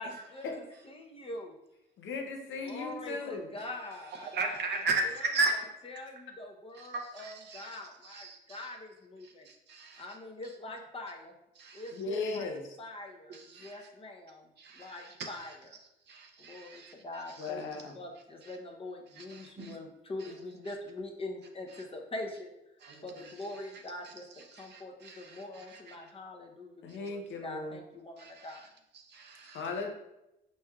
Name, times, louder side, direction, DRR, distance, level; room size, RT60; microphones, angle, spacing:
voice 1, 0.0-1.5 2.6-9.5 10.0-11.3 11.7-12.5 12.8-15.8 16.4-22.5 23.0-28.7, left 2 dB, 30° left, 0.7 m, -44 dB
voice 2, 2.0-3.5 11.9-12.8 17.4-18.0 26.8-27.8 29.4-29.9, left 3 dB, 75° left, 0.8 m, -37 dB
voice 3, 4.2-5.5 6.9-7.7 8.1-8.6 9.5-10.0 11.6-11.8 13.3-13.7 14.6-15.3 16.1-16.9 19.2-19.7 22.8-23.0 24.6-25.9 26.9-27.0 28.2-28.5 29.1-29.6, right 3 dB, 60° right, 0.6 m, -36 dB
4.6 x 4.2 x 2.3 m
cardioid pair, 90°, 20 cm